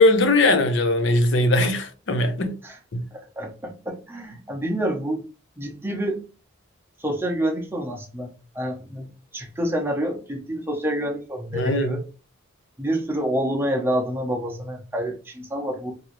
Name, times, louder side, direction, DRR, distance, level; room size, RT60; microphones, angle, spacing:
voice 1, 0.0-2.5 2.9-3.0 11.5-12.0, left 2 dB, 60° left, 0.6 m, -20 dB
voice 2, 3.1-5.2 5.6-6.2 7.0-12.0 12.8-15.9, right 1 dB, 10° right, 0.7 m, -28 dB
3.0 x 2.6 x 3.0 m
head